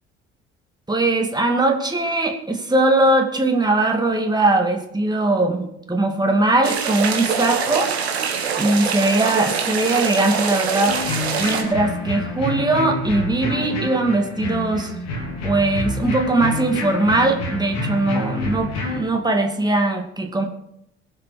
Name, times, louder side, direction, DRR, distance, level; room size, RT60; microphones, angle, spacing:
voice 1, 0.9-7.9 8.6-11.0 11.4-15.0 15.4-20.4, right 2 dB, 15° right, 2 dB, 2.5 m, -20 dB
sound 1, 6.6-11.6, right 6 dB, 80° right, 1.5 m, -24 dB
sound 2, 10.9-19.0, left 2 dB, 55° left, 3.6 m, -28 dB
22.0 x 7.7 x 4.8 m, 0.76 s
figure-of-eight pair, 50°, 31 cm